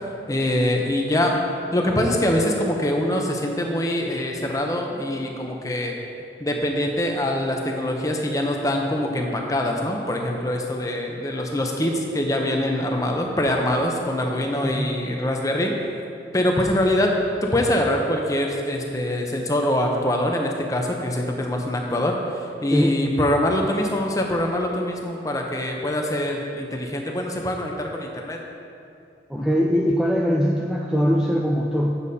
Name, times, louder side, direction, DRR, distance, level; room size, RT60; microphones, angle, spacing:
voice 1, 0.3-1.4 1.7-5.9 6.4-15.7 16.3-17.1 17.4-28.4 29.3-29.6, left 1 dB, 20° left, 1 dB, 0.7 m, -24 dB
voice 2, 14.6-14.9 22.7-23.0 29.3-32.0, equal, 5° right, -2 dB, 0.3 m, -22 dB
8.4 x 7.1 x 4.1 m, 2.6 s
head